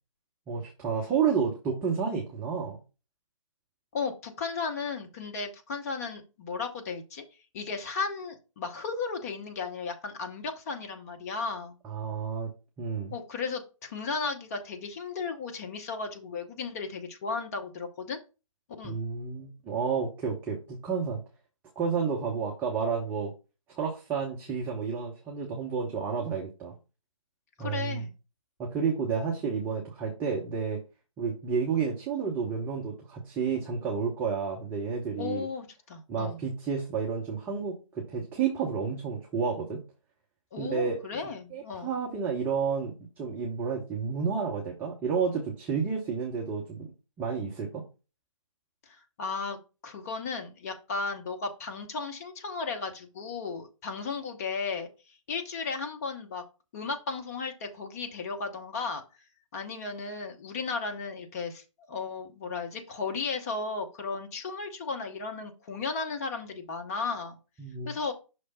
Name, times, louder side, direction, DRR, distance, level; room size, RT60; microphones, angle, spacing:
voice 1, 0.5-2.8 11.8-12.5 12.8-13.1 18.8-21.2 21.8-23.3 23.7-26.7 27.6-28.1 28.6-30.8 31.2-35.5 36.1-39.8 40.6-41.0 41.5-46.8 47.2-47.8 67.6-67.9, right 6 dB, 10° right, -2 dB, 0.7 m, -30 dB
voice 2, 3.9-7.2 7.5-11.8 13.1-18.2 18.8-19.0 27.6-28.1 35.2-36.4 40.5-41.9 48.9-49.6 49.8-56.4 56.7-59.0 59.5-67.4 67.8-68.1, left 4 dB, 30° left, 4 dB, 0.9 m, -35 dB
5.8 x 3.2 x 5.4 m, 0.31 s
figure-of-eight pair, 140°, 17 cm